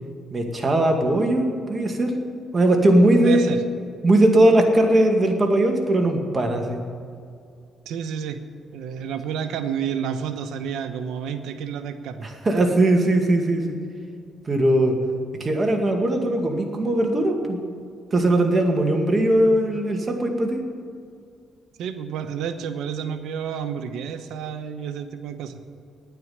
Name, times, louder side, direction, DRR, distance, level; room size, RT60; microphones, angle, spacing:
voice 1, 0.3-2.1 2.5-3.5 4.0-6.8 12.2-13.8 14.5-15.0 15.4-17.6 18.1-20.6, right 1 dB, 30° right, 3 dB, 2.1 m, -19 dB
voice 2, 3.2-3.6 7.8-8.4 8.7-12.3 21.8-25.5, right 7 dB, 85° right, 8 dB, 0.9 m, -30 dB
9.7 x 9.3 x 9.5 m, 2.3 s
cardioid pair, 90°, 0 cm